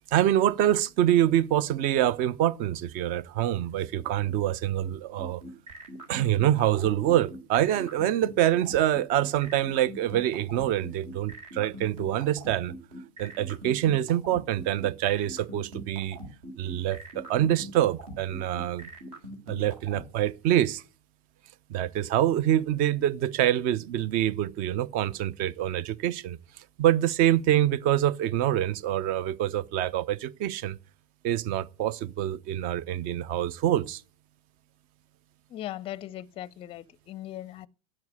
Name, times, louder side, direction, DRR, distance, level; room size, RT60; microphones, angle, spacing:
voice 1, 0.1-5.4 6.1-12.7 13.2-16.2 16.6-18.9 19.5-20.8 21.7-26.4 26.8-30.8 31.2-34.0, right 12 dB, 40° right, 0.7 m, -25 dB
sound 1, 5.2-20.0, equal, 60° right, 3.4 m, -42 dB
voice 2, 35.5-37.7, left 13 dB, 25° left, 0.5 m, -39 dB
10.5 x 7.6 x 9.5 m
figure-of-eight pair, 90°, 21 cm